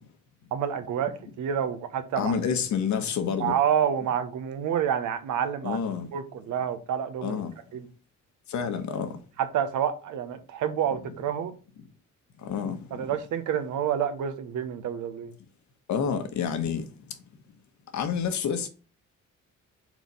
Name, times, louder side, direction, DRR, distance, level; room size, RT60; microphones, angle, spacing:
voice 1, 0.5-2.4 3.4-5.8 6.1-7.4 7.7-7.9 9.5-11.5 12.9-15.3, right 9 dB, 80° right, 1.0 m, -28 dB
voice 2, 2.2-3.5 5.6-6.1 7.2-7.5 8.5-9.2 12.4-12.8 15.9-16.8 17.9-18.7, left 7 dB, 70° left, 1.2 m, -28 dB
4.6 x 4.1 x 5.3 m
cardioid pair, 90°, 30 cm